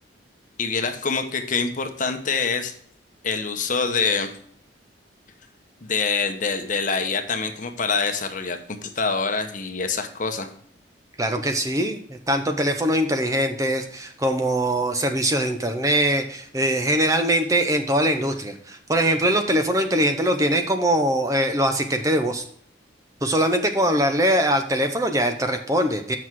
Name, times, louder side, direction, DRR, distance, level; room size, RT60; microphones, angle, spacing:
voice 1, 0.6-2.7 3.2-4.3 5.8-10.5, left 4 dB, 40° left, 6 dB, 0.9 m, -25 dB
voice 2, 11.2-22.4 23.2-26.2, right 1 dB, 15° right, 6 dB, 0.6 m, -22 dB
8.0 x 6.0 x 4.6 m, 0.62 s
head